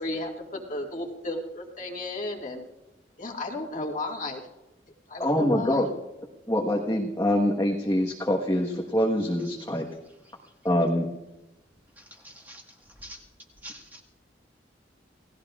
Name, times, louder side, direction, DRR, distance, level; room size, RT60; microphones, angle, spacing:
voice 1, 0.0-2.6 3.2-4.4 5.1-5.9, left 2 dB, 45° left, 1 dB, 2.0 m, -34 dB
voice 2, 5.2-5.9 6.5-9.9 10.6-11.1, left 1 dB, 20° left, -3 dB, 1.3 m, -24 dB
voice 3, 12.0-13.2 13.6-14.0, equal, 10° right, -2 dB, 1.8 m, -46 dB
29.0 x 17.5 x 2.5 m, 0.98 s
head